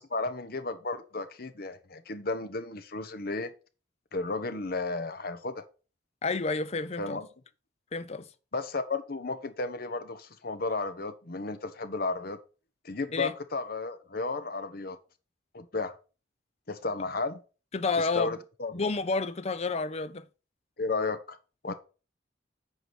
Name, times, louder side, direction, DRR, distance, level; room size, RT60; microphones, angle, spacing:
voice 1, 0.1-3.5 4.1-5.6 7.0-7.3 8.5-12.4 12.8-15.0 15.5-16.0 16.7-17.4 18.0-18.9 20.8-21.4 21.6-21.7, left 3 dB, 55° left, 1.0 m, -33 dB
voice 2, 6.2-7.2 7.9-8.3 13.1-13.3 17.7-18.4 18.7-20.2 21.7-21.8, left 3 dB, 35° left, 0.5 m, -30 dB
8.1 x 4.8 x 5.9 m
head